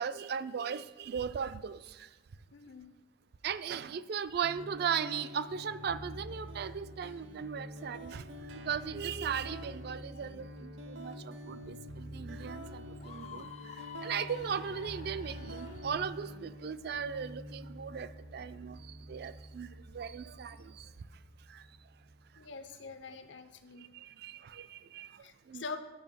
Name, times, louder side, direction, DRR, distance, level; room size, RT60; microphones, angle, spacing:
voice 1, 0.0-2.1 3.4-8.2 8.6-13.7 14.0-20.9 21.5-21.6 23.8-25.6, right 7 dB, 55° right, 14 dB, 0.3 m, -38 dB
voice 2, 2.5-3.0 22.4-23.9 25.2-25.8, left 4 dB, 75° left, 9 dB, 0.7 m, -44 dB
sound 1, 4.4-22.4, equal, 75° right, 0.8 m, -46 dB
Screaming, 13.0-16.0, left 7 dB, 35° left, 0.3 m, -48 dB
9.0 x 5.1 x 5.3 m, 1.1 s
head